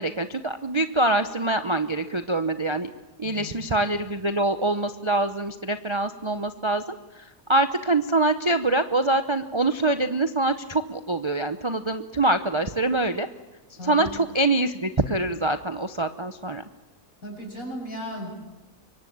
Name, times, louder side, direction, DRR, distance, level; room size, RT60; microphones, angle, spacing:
voice 1, 0.0-2.9 3.2-13.3 13.8-16.6, right 2 dB, 25° right, 9 dB, 0.7 m, -25 dB
voice 2, 13.8-14.1 17.2-18.3, equal, 60° left, 1 dB, 7.8 m, -35 dB
25.0 x 23.5 x 8.8 m, 1.2 s
omnidirectional pair, 1.7 m